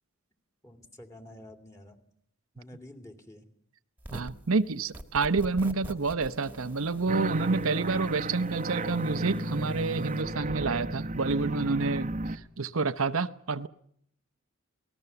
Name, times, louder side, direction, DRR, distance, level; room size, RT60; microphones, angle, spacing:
voice 1, 0.6-2.1 2.5-3.5, left 1 dB, 15° left, 7 dB, 2.5 m, -49 dB
sound 1, 4.0-4.5 4.9-10.2, right 1 dB, 10° right, 1.7 m, -45 dB
voice 2, 4.1-13.7, right 4 dB, 80° right, 10 dB, 0.9 m, -29 dB
sound 2, 7.1-12.4, right 2 dB, 35° right, 1.0 m, -33 dB
27.0 x 19.0 x 6.9 m, 0.68 s
head